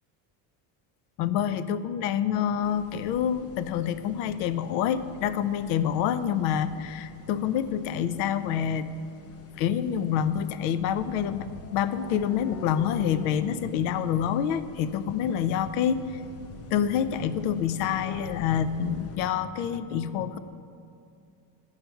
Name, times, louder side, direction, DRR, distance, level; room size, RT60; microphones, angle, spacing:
voice 1, 1.2-8.9 9.6-16.0 16.7-20.4, left 9 dB, 85° left, 14 dB, 0.6 m, -27 dB
sound 1, 2.6-19.2, left 3 dB, 30° left, 0.5 m, -46 dB
9.1 x 5.7 x 5.8 m, 2.5 s
cardioid pair, 140°, 49 cm